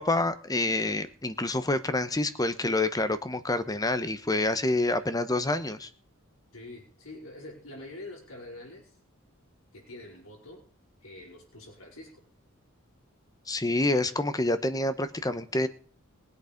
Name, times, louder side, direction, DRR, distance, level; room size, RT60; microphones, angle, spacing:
voice 1, 0.0-5.9 13.5-15.7, left 2 dB, 20° left, 12 dB, 1.0 m, -27 dB
voice 2, 6.5-9.0 9.7-10.7 11.0-12.2, left 2 dB, 90° left, 0 dB, 5.3 m, -45 dB
21.5 x 8.4 x 5.2 m, 0.43 s
head